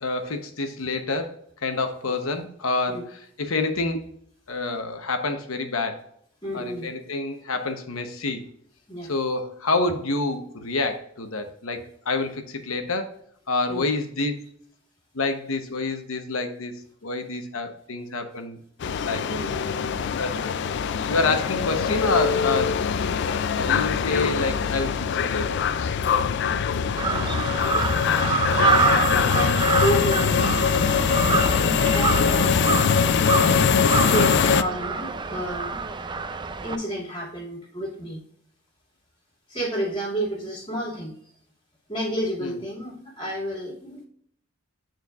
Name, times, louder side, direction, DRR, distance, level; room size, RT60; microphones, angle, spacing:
voice 1, 0.0-4.0 4.5-6.1 6.5-8.4 9.1-13.1 13.5-14.4 15.1-16.7 17.0-18.6 19.0-19.5 20.2-20.5 20.8-22.8 23.5-25.6 42.4-42.5, left 3 dB, 90° left, 1.0 m, -28 dB
voice 2, 6.4-6.9 8.9-9.1 13.7-13.8 19.2-20.0 26.9-27.4 28.6-32.6 33.9-35.8 36.6-38.2 39.5-41.2 41.9-44.0, equal, 25° left, 2.3 m, -30 dB
sound 1, 18.8-34.6, left 6 dB, 55° left, 0.3 m, -23 dB
Crow, 27.0-36.7, right 4 dB, 20° right, 0.5 m, -26 dB
9.4 x 4.5 x 2.4 m
head